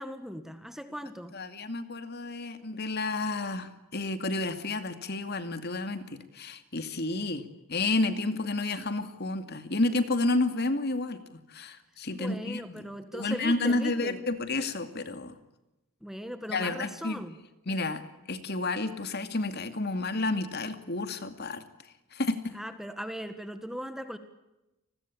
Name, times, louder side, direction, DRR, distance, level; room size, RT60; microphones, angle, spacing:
voice 1, 0.0-1.3 12.1-14.2 16.0-17.4 17.7-17.8 22.5-24.2, equal, ahead, 9 dB, 1.6 m, -39 dB
voice 2, 1.3-12.9 13.1-15.3 16.5-17.2 17.7-21.6 22.1-22.4, left 2 dB, 45° left, 9 dB, 2.4 m, -31 dB
29.5 x 21.5 x 8.7 m, 0.96 s
head